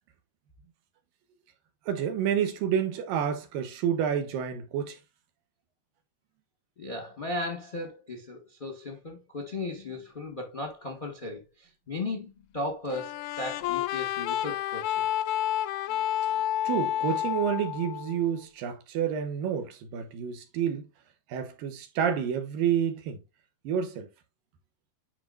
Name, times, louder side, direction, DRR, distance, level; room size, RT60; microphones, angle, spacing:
voice 1, 1.9-5.0 16.6-20.9 21.3-23.2 23.6-24.1, right 8 dB, 90° right, 2.9 m, -29 dB
voice 2, 6.8-15.0, left 2 dB, 30° left, 0.9 m, -36 dB
sound 1, 12.9-18.4, left 12 dB, 85° left, 1.6 m, -30 dB
9.6 x 4.8 x 2.6 m
omnidirectional pair, 3.9 m